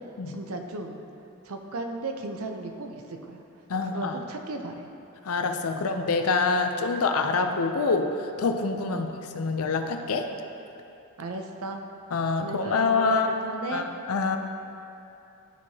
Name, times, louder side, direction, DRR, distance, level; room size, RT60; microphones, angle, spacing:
voice 1, 0.3-1.0 1.4-3.4 3.8-4.9 5.7-5.9 8.9-9.0 11.2-11.8 12.4-13.9, right 3 dB, 75° right, 4 dB, 0.6 m, -35 dB
voice 2, 3.7-4.2 5.2-10.3 12.1-13.3 13.7-14.4, left 4 dB, 80° left, 6 dB, 0.5 m, -26 dB
12.0 x 4.6 x 2.8 m, 2.8 s
head